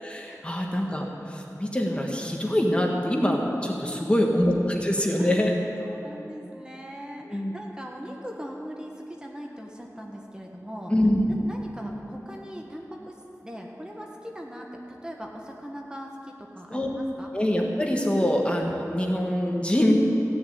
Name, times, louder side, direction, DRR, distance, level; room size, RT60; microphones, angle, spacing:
voice 1, 0.0-5.5 7.3-7.5 10.9-11.4 16.7-16.9 17.3-20.0, left 1 dB, 20° left, 0 dB, 1.7 m, -24 dB
voice 2, 3.8-4.2 5.2-10.9 11.3-17.3 18.2-18.4, equal, 15° right, 0 dB, 1.5 m, -40 dB
16.0 x 7.0 x 9.5 m, 2.9 s
wide cardioid pair, 60°, 6 cm